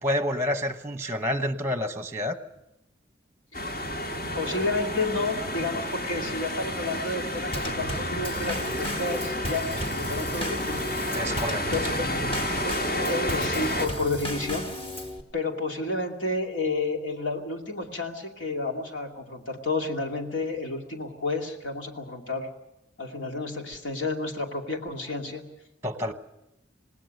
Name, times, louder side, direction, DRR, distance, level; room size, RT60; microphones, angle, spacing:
voice 1, 0.0-2.4 11.1-11.6 25.8-26.1, left 1 dB, 15° right, 9 dB, 1.0 m, -28 dB
sound 1, 3.5-13.9, left 1 dB, 50° left, 2.2 m, -30 dB
voice 2, 4.4-11.0 11.7-12.1 12.6-14.7 15.3-22.5 23.0-25.5, left 2 dB, 85° left, 2 dB, 2.6 m, -31 dB
Drum kit / Snare drum / Bass drum, 7.5-15.2, equal, 30° left, 1.8 m, -35 dB
27.0 x 19.0 x 6.6 m, 0.86 s
head